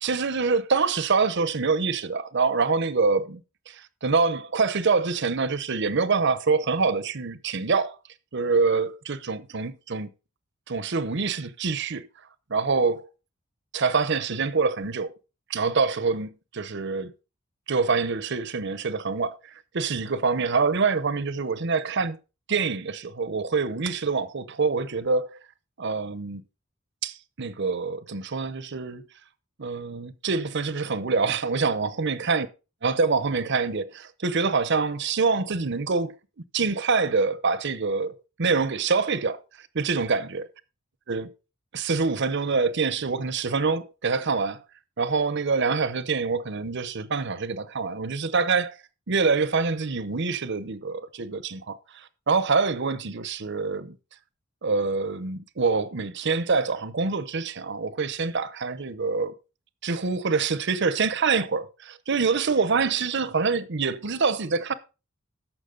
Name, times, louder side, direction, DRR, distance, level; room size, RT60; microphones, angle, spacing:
voice 1, 0.0-3.4 3.7-8.0 8.3-10.1 10.7-12.1 12.5-13.1 13.7-15.2 15.5-17.1 17.7-19.4 19.7-22.2 22.5-25.4 25.8-26.4 27.0-29.0 29.6-32.5 32.8-36.1 36.5-39.4 39.7-40.5 41.1-41.3 41.7-44.6 45.0-48.8 49.1-54.0 54.6-59.3 59.8-64.7, right 4 dB, 60° right, 0.8 m, -25 dB
13.5 x 6.0 x 3.9 m
head